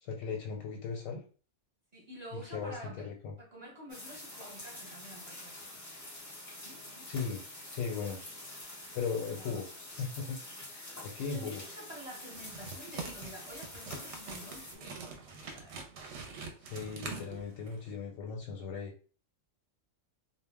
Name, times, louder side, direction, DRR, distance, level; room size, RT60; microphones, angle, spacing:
voice 1, 0.0-1.2 2.3-3.3 7.1-7.4 7.7-8.2 8.9-9.6 10.0-10.4 10.7-11.6 16.6-18.9, left 5 dB, 85° left, 0 dB, 1.0 m, -37 dB
voice 2, 1.9-3.1 3.4-5.6 6.5-7.1 9.4-9.6 11.2-15.9, right 1 dB, 35° right, -6 dB, 0.8 m, -49 dB
sound 1, 3.9-14.7, left 1 dB, 20° left, 0.5 m, -47 dB
sound 2, 12.3-17.9, right 4 dB, 70° right, 0.8 m, -45 dB
2.2 x 2.0 x 3.3 m, 0.39 s
omnidirectional pair, 1.3 m